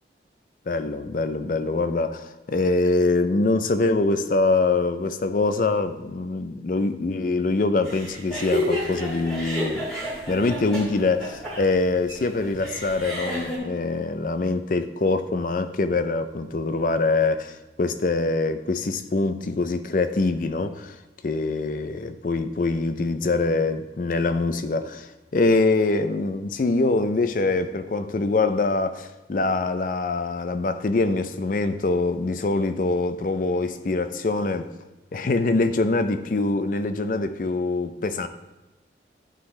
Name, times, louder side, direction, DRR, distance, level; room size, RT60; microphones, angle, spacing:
voice 1, 0.7-9.9 10.3-17.5 17.8-20.9 21.2-34.7 35.1-38.3, left 3 dB, 50° left, 10 dB, 0.4 m, -24 dB
sound 1, 7.8-13.6, equal, ahead, 1.9 m, -30 dB
11.0 x 3.8 x 3.2 m, 1.0 s
head